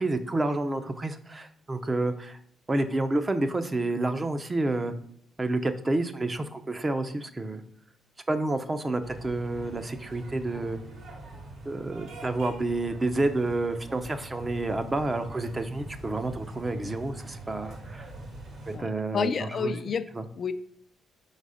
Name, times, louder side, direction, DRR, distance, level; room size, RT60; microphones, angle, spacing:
voice 1, 0.0-2.4 2.7-4.9 5.4-7.6 8.3-10.8 11.6-18.1 18.7-19.7 20.2-20.3, right 2 dB, 25° right, 8 dB, 0.6 m, -29 dB
sound 1, 9.0-18.8, right 2 dB, 70° right, 2.4 m, -43 dB
voice 2, 19.1-20.1 20.4-20.5, left 6 dB, 50° left, 10 dB, 0.4 m, -29 dB
4.9 x 4.0 x 4.9 m, 0.66 s
cardioid pair, 90°, 0 cm